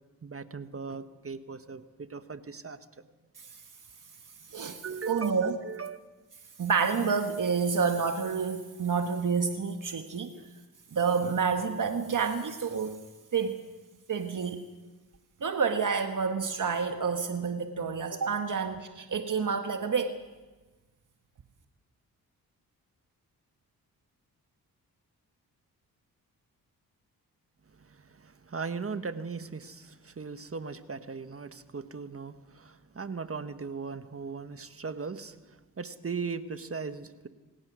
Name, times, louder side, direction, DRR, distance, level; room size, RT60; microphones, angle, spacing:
voice 1, 0.2-2.8 4.8-6.0 10.4-10.5 27.7-37.3, right 5 dB, 40° right, 10 dB, 1.4 m, -38 dB
voice 2, 5.1-5.5 6.6-10.3 10.9-13.0 13.3-13.6 14.1-14.6 15.4-20.2, right 5 dB, 55° right, 6 dB, 1.6 m, -29 dB
26.5 x 17.5 x 6.3 m, 1.2 s
cardioid pair, 60°, 37 cm